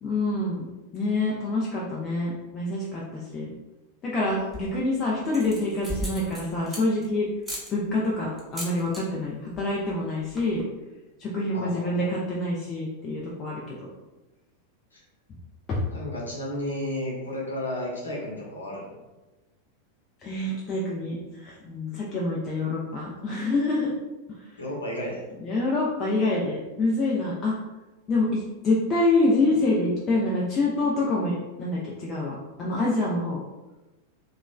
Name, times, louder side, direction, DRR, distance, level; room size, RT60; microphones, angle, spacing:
voice 1, 0.0-3.5 4.0-7.3 7.7-10.7 11.2-13.9 15.7-15.8 20.2-23.9 25.4-27.6 28.1-33.4, left 2 dB, 25° left, -5 dB, 0.4 m, -26 dB
sound 1, 4.3-4.8 5.3-7.1 7.4-7.7 8.4-9.0 9.3-9.6 9.9-10.0 10.2-10.6, equal, ahead, 0.8 m, -36 dB
voice 2, 11.5-12.1 14.9-15.0 15.9-18.9 24.6-25.2, left 1 dB, 75° left, -4 dB, 0.8 m, -33 dB
2.9 x 2.3 x 2.2 m, 1.1 s
figure-of-eight pair, 90°, 0 cm